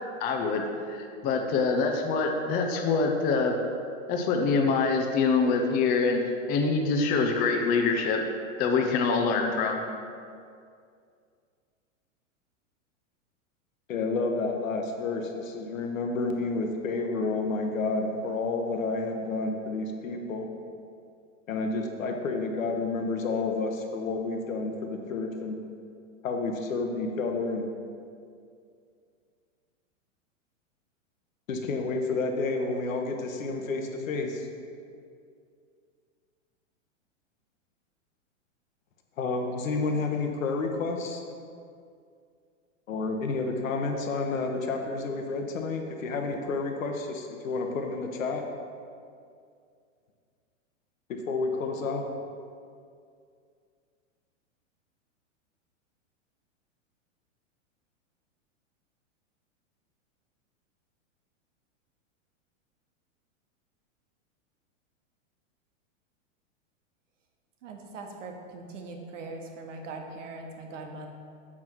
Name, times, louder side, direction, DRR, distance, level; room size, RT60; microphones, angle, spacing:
voice 1, 0.2-3.6 4.1-8.2 8.6-9.8, left 4 dB, 25° left, 2 dB, 0.6 m, -25 dB
voice 2, 13.9-20.5 21.5-25.6 26.2-27.7 31.5-34.5 39.2-41.2 42.9-48.4 51.3-52.0, left 3 dB, 90° left, 3 dB, 1.0 m, -30 dB
voice 3, 67.6-71.1, right 3 dB, 70° right, 3 dB, 1.3 m, -41 dB
7.3 x 6.1 x 4.5 m, 2.3 s
hypercardioid pair, 140°, 39 cm